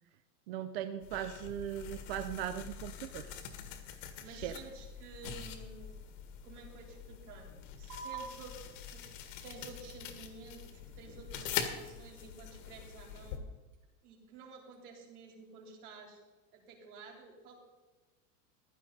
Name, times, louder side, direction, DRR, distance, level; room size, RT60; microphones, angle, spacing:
voice 1, 0.5-3.3 4.3-4.5, right 10 dB, 40° right, 9 dB, 0.5 m, -39 dB
sound 1, 1.0-13.4, left 8 dB, 55° left, 1.8 m, -44 dB
voice 2, 4.2-5.9 6.4-7.5 7.8-13.4 14.0-16.2 16.5-17.6, right 4 dB, 70° right, 0 dB, 4.1 m, -52 dB
sound 2, 7.9-14.9, right 5 dB, 90° right, 4.2 m, -53 dB
15.5 x 12.5 x 4.1 m, 1.2 s
supercardioid pair, 175°, 46 cm